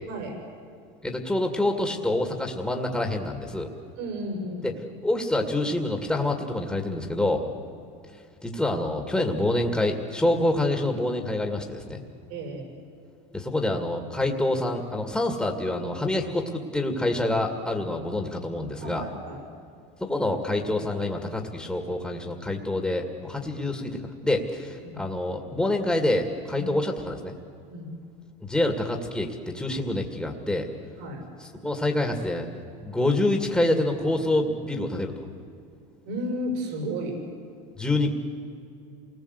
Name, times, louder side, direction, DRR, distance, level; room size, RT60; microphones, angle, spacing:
voice 1, 1.0-3.7 4.6-4.7 5.0-7.4 8.4-12.0 13.3-19.0 20.0-27.4 28.4-30.7 31.6-32.5 32.8-35.2 37.8-38.1, left 1 dB, 5° left, 2 dB, 2.2 m, -26 dB
voice 2, 4.0-4.7 12.3-12.7 18.8-19.4 24.8-25.0 26.5-26.6 27.7-27.9 31.0-31.3 36.0-37.2, equal, 75° right, 2 dB, 6.7 m, -33 dB
28.0 x 20.0 x 8.2 m, 2.5 s
supercardioid pair, 130°, 20 cm